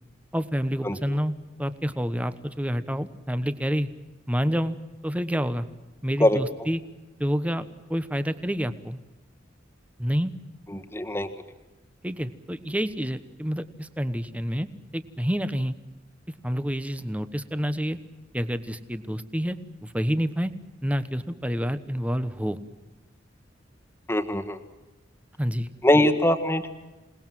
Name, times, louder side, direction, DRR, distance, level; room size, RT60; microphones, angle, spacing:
voice 1, 0.3-1.3 1.6-3.9 4.3-4.8 5.0-5.7 6.0-6.8 7.2-9.0 10.0-10.3 12.0-14.7 14.9-15.7 16.4-18.0 18.3-19.6 19.8-20.5 20.8-22.6 25.4-25.7, equal, 5° right, 11 dB, 1.1 m, -28 dB
voice 2, 0.8-1.2 6.2-6.4 10.7-11.3 24.1-24.6 25.8-26.7, left 1 dB, 15° left, 5 dB, 1.7 m, -22 dB
28.0 x 19.5 x 7.6 m, 1.1 s
head